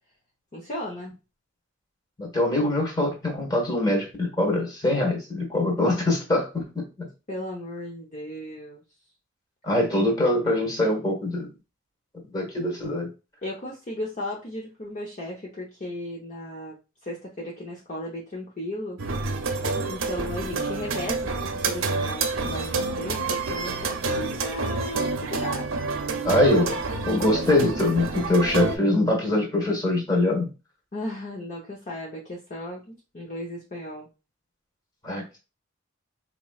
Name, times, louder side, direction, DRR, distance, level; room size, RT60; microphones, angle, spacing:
voice 1, 0.5-1.1 7.3-8.8 13.4-19.0 19.9-25.7 30.9-34.1, left 1 dB, 40° left, -3 dB, 0.7 m, -35 dB
voice 2, 2.2-7.1 9.6-11.5 12.3-13.1 26.2-26.8 27.0-30.5 35.0-35.2, left 1 dB, 20° left, 0 dB, 1.3 m, -23 dB
sound 1, 19.0-28.8, right 3 dB, 75° right, 0.6 m, -28 dB
4.1 x 3.0 x 2.3 m, 0.30 s
head